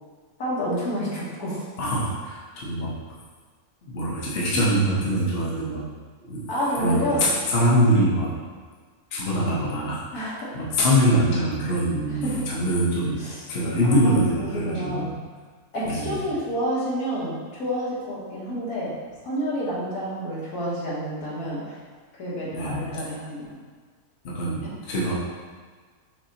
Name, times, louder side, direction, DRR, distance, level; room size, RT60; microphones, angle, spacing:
voice 1, 0.4-1.6 6.5-7.3 10.1-10.5 12.2-12.5 13.2-13.4 13.8-15.1 15.7-18.9 19.2-21.8 22.2-23.6, equal, 75° left, -7 dB, 1.7 m, -29 dB
voice 2, 1.8-2.9 3.8-5.8 6.2-6.4 6.8-8.3 9.1-10.0 10.5-13.2 13.5-15.1 15.8-16.2 22.5-22.9 24.2-25.1, equal, 45° left, -6 dB, 1.0 m, -23 dB
6.0 x 2.8 x 2.8 m, 1.5 s
omnidirectional pair, 1.6 m